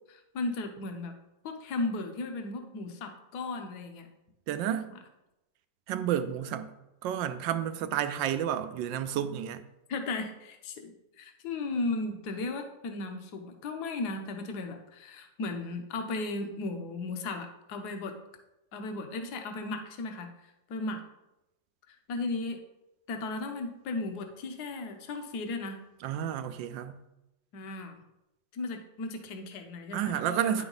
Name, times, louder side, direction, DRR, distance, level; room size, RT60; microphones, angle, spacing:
voice 1, 0.1-1.1 1.4-4.1 9.9-10.9 11.2-18.1 18.7-20.3 20.7-21.0 21.9-22.6 23.1-25.8 27.5-28.0 28.5-30.6, left 3 dB, 60° left, 1.4 m, -35 dB
voice 2, 4.5-4.9 5.9-6.7 7.0-9.6 26.0-27.0 29.9-30.6, right 10 dB, 80° right, 1.3 m, -31 dB
9.6 x 6.0 x 4.0 m
omnidirectional pair, 2.1 m